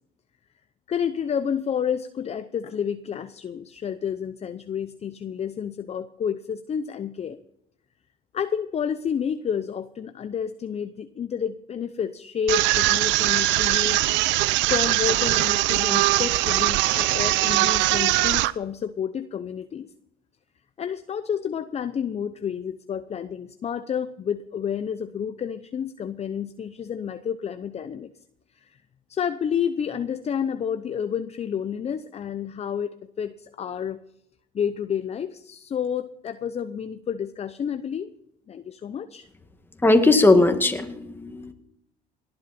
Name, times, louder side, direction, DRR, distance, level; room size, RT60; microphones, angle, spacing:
voice 1, 0.9-7.4 8.3-14.3 14.7-19.9 20.8-28.1 28.6-28.8 29.1-34.0 34.5-38.1 38.5-39.3, left 8 dB, 35° left, 11 dB, 0.7 m, -30 dB
sound 1, 12.5-18.5, right 18 dB, 70° right, 0.6 m, -21 dB
voice 2, 39.8-41.5, left 2 dB, 10° left, 6 dB, 1.9 m, -18 dB
18.5 x 10.5 x 4.3 m, 0.75 s
supercardioid pair, 95°, 20 cm